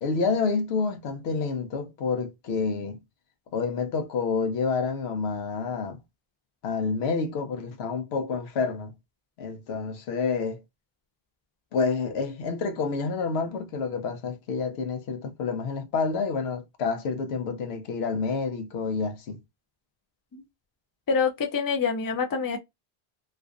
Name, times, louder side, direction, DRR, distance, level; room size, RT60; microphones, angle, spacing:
voice 1, 0.0-3.0 3.5-6.0 6.6-8.9 9.4-10.6 11.7-19.4, left 4 dB, 90° left, 0.8 m, -28 dB
voice 2, 21.1-22.6, left 5 dB, 35° left, 0.3 m, -26 dB
2.4 x 2.4 x 2.3 m
omnidirectional pair, 1.0 m